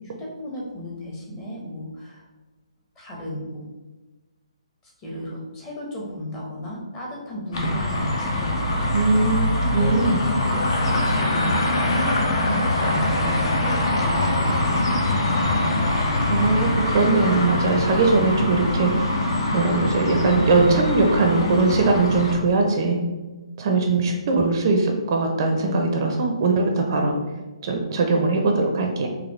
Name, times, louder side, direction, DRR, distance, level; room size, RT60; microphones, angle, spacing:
voice 1, 0.2-2.2 2.9-3.7 4.8-9.1 9.6-15.2, equal, 20° left, -4 dB, 1.1 m, -34 dB
sound 1, 7.5-22.4, left 1 dB, 50° left, 0.7 m, -23 dB
voice 2, 8.9-10.2 16.3-19.0 19.5-23.0 23.6-27.1 27.6-29.1, right 3 dB, 40° right, 3 dB, 0.5 m, -21 dB
4.0 x 2.7 x 3.1 m, 1.2 s
figure-of-eight pair, 140°, 3 cm